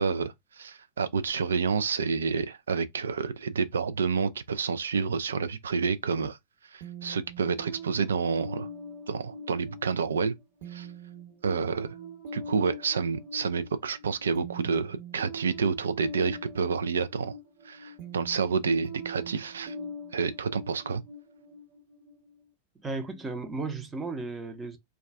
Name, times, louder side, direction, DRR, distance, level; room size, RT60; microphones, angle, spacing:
voice 1, 0.0-6.4 6.7-8.7 9.1-10.3 10.7-10.9 11.4-11.9 12.3-17.3 17.7-19.7 20.1-21.0, right 5 dB, 70° right, 0.3 m, -29 dB
sound 1, 6.8-22.4, right 1 dB, 45° right, 1.0 m, -43 dB
voice 2, 22.8-24.8, right 3 dB, 15° right, 0.6 m, -34 dB
2.3 x 2.3 x 3.4 m
figure-of-eight pair, 90°, 0 cm